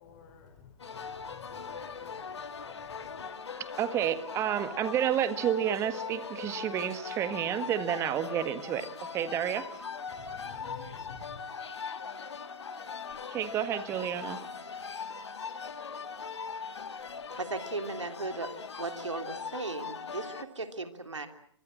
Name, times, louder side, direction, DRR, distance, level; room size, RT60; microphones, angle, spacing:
voice 1, 0.0-3.3 10.1-11.4, left 6 dB, 35° left, 5 dB, 5.6 m, -51 dB
sound 1, 0.8-20.4, left 5 dB, 65° left, 2.3 m, -40 dB
voice 2, 3.8-8.8 9.1-9.6 13.3-14.5, right 10 dB, 20° right, 12 dB, 1.8 m, -30 dB
voice 3, 17.4-18.5 18.8-21.3, right 3 dB, 75° right, 7 dB, 3.2 m, -36 dB
26.5 x 24.5 x 7.6 m, 0.68 s
figure-of-eight pair, 125°, 15 cm